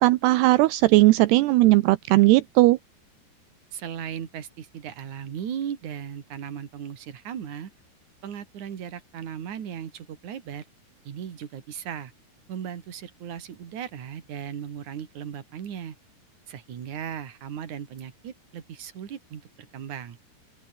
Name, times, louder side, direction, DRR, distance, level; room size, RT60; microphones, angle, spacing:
voice 1, 0.0-2.8, right 19 dB, 80° right, 2.7 m, -18 dB
voice 2, 3.7-7.7 8.2-10.7 11.1-12.1 12.5-16.0 16.5-20.2, right 8 dB, 50° right, 3.5 m, -37 dB
open air
omnidirectional pair, 5.0 m